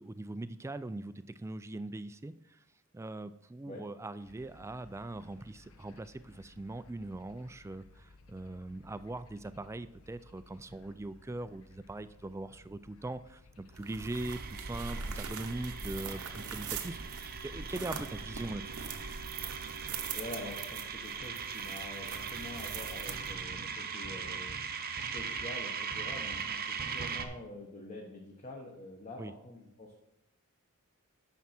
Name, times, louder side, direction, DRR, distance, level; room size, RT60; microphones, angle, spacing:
voice 1, 0.0-2.6 2.9-18.7 29.2-29.3, right 2 dB, 15° right, 13 dB, 0.3 m, -41 dB
sound 1, 4.2-17.8, left 3 dB, 70° left, 0.8 m, -59 dB
sound 2, 13.7-23.6, right 5 dB, 75° right, 0.9 m, -42 dB
sound 3, 14.1-27.2, right 6 dB, 45° right, 0.7 m, -40 dB
voice 2, 20.1-24.5 25.1-29.9, left 2 dB, 35° left, -1 dB, 1.1 m, -46 dB
9.4 x 6.0 x 4.3 m, 0.82 s
head